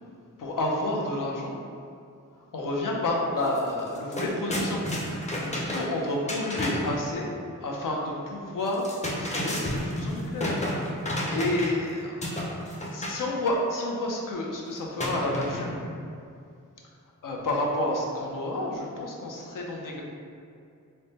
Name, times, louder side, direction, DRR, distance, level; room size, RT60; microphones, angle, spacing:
voice 1, 0.4-1.6 2.5-4.9 5.5-7.3 7.6-10.6 11.0-15.8 17.2-20.0, left 1 dB, 85° left, -1 dB, 0.6 m, -30 dB
sound 1, 3.5-3.6 3.9-7.0 8.7-11.9 12.2-13.2 15.0-15.9, left 1 dB, 20° left, 0.5 m, -31 dB
3.4 x 2.1 x 4.1 m, 2.4 s
wide cardioid pair, 125°, 31 cm